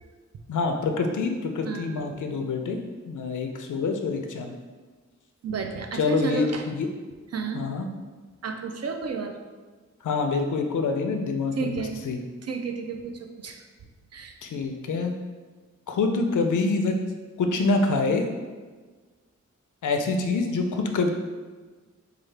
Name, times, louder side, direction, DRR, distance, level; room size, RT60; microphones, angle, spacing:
voice 1, 0.5-4.5 5.9-6.9 7.5-7.9 10.0-12.2 14.4-15.1 15.9-16.9 17.4-18.2 19.8-21.1, left 3 dB, 90° left, 4 dB, 0.5 m, -26 dB
voice 2, 1.6-2.4 5.4-6.6 7.3-7.6 8.4-9.4 11.6-12.0 12.4-13.7 14.1-14.4, right 5 dB, 55° right, 5 dB, 0.5 m, -32 dB
4.6 x 2.4 x 3.2 m, 1.4 s
wide cardioid pair, 80°, 30 cm